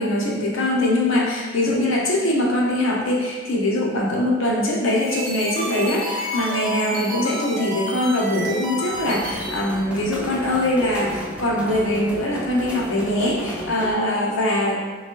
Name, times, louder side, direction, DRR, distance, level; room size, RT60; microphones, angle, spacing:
voice 1, 0.0-14.8, left 1 dB, 65° left, -2 dB, 0.7 m, -22 dB
sound 1, 4.8-9.8, right 1 dB, 70° right, 0.8 m, -30 dB
sound 2, 8.9-13.9, equal, 5° right, 0.4 m, -34 dB
3.3 x 3.1 x 2.9 m, 1.4 s
head